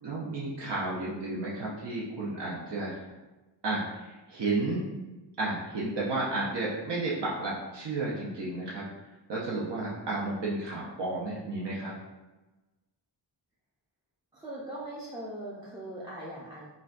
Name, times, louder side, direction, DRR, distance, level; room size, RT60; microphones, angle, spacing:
voice 1, 0.0-3.1 3.6-4.9 5.4-8.9 9.3-11.9, right 2 dB, 65° right, -6 dB, 0.6 m, -32 dB
voice 2, 14.3-16.7, right 1 dB, 10° right, -7 dB, 0.4 m, -40 dB
3.9 x 2.2 x 2.4 m, 1.1 s
wide cardioid pair, 115°, 45 cm